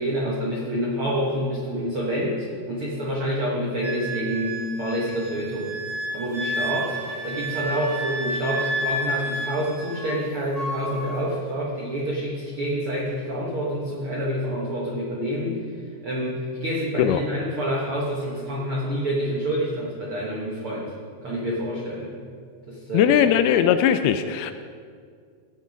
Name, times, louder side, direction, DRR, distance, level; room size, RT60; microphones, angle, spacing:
voice 1, 0.0-5.7 6.1-15.7 16.0-20.9 21.2-22.2 22.7-23.3, equal, 70° right, -4 dB, 1.3 m, -27 dB
Wind instrument woodwind instrument, 3.8-10.2 10.5-11.2, right 1 dB, 50° right, 0.9 m, -31 dB
voice 2, 22.9-24.5, left 9 dB, 80° left, 10 dB, 2.3 m, -19 dB
17.5 x 6.3 x 5.2 m, 2.1 s
omnidirectional pair, 4.6 m